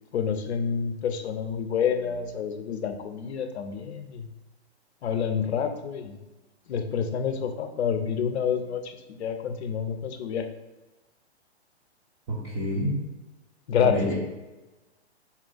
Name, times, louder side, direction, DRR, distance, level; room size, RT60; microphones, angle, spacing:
voice 1, 0.1-4.3 5.0-6.2 6.7-10.5 13.7-14.1, left 7 dB, 75° left, 7 dB, 0.6 m, -28 dB
voice 2, 12.3-13.0 13.8-14.1, equal, 30° right, -6 dB, 0.8 m, -28 dB
4.1 x 2.4 x 3.8 m, 1.1 s
hypercardioid pair, 135°, 33 cm